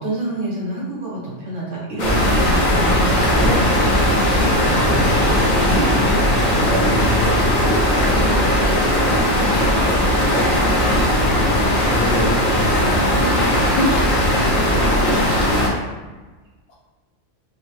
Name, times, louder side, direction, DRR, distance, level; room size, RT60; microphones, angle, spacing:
voice 1, 0.0-3.4 4.6-5.7, right 2 dB, 90° right, -6 dB, 1.5 m, -28 dB
sound 1, 2.0-15.7, equal, 45° left, 0.7 m, -17 dB
voice 2, 3.3-4.9 5.3-6.3 6.9-7.9 8.2-9.4 11.7-13.4 14.9-15.8 16.7-16.8, left 1 dB, 90° left, -4 dB, 1.2 m, -31 dB
3.6 x 2.0 x 3.1 m, 1.2 s
omnidirectional pair, 1.3 m